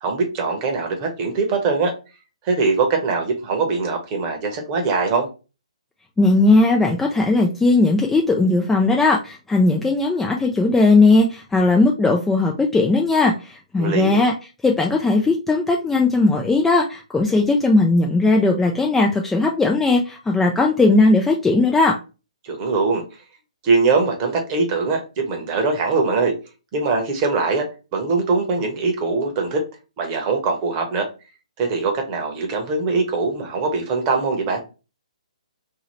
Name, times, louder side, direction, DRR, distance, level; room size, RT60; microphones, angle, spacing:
voice 1, 0.0-1.9 2.4-5.3 13.8-14.2 22.4-23.0 23.6-26.3 26.7-27.7 27.9-29.6 30.0-31.1 31.6-34.6, right 4 dB, 30° right, 3 dB, 0.9 m, -22 dB
voice 2, 6.2-14.3 14.6-22.0, left 3 dB, 5° left, 0 dB, 0.3 m, -17 dB
2.7 x 2.7 x 3.0 m, 0.31 s
figure-of-eight pair, 130°, 4 cm